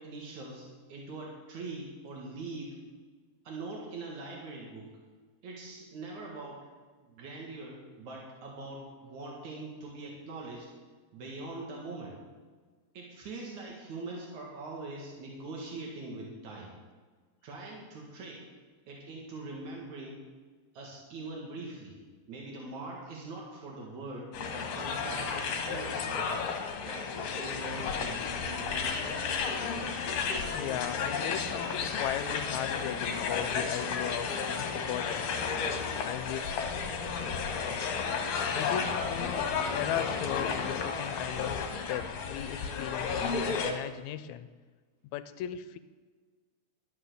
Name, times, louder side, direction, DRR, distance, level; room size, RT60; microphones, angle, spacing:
voice 1, 0.0-2.8 3.4-5.0 5.4-6.7 7.0-10.7 11.1-12.2 12.9-16.7 17.4-18.5 18.9-20.2 20.7-22.0 22.3-26.4 26.8-29.1, right 2 dB, 80° right, -2 dB, 3.3 m, -42 dB
sound 1, 24.3-43.7, left 5 dB, 65° left, 2.2 m, -33 dB
voice 2, 30.5-35.3 36.0-36.6 38.5-44.5 45.1-45.8, left 11 dB, 85° left, 13 dB, 2.0 m, -37 dB
11.5 x 11.0 x 6.7 m, 1.5 s
omnidirectional pair, 3.3 m